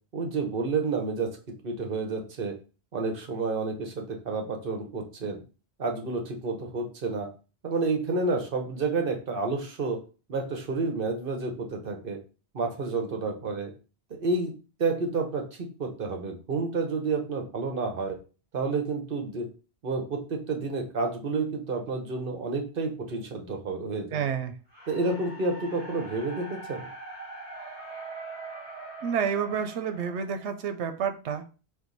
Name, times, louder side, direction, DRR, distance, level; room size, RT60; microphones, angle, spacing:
voice 1, 0.1-1.3 1.6-2.5 2.9-5.4 5.8-7.3 7.6-10.0 10.3-12.2 12.5-13.7 14.1-14.5 14.8-18.2 18.5-19.5 19.8-24.3 24.9-26.9, right 3 dB, 55° right, 4 dB, 1.0 m, -30 dB
voice 2, 24.1-24.6 29.0-31.4, right 7 dB, 90° right, 8 dB, 0.9 m, -29 dB
sound 1, 24.7-30.9, right 3 dB, 35° right, 1.9 m, -42 dB
4.4 x 2.6 x 3.9 m, 0.34 s
omnidirectional pair, 1.1 m